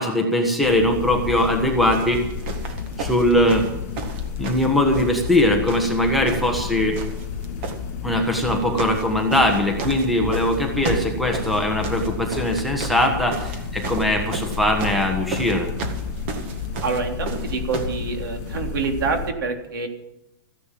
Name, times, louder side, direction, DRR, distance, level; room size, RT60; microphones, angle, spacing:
voice 1, 0.0-2.2 3.0-3.7 4.4-7.0 8.0-15.7, left 1 dB, ahead, 3 dB, 1.2 m, -21 dB
sound 1, 0.6-19.3, left 6 dB, 45° left, 3.4 m, -32 dB
sound 2, 1.3-1.5 1.9-5.4 5.7-6.7 6.9-7.8 8.4-9.1 9.3-18.0 18.8-18.9, right 4 dB, 35° right, 1.7 m, -33 dB
voice 2, 16.8-19.9, right 4 dB, 75° right, 3 dB, 3.6 m, -26 dB
15.0 x 10.5 x 7.5 m, 0.86 s
supercardioid pair, 180°, 11 cm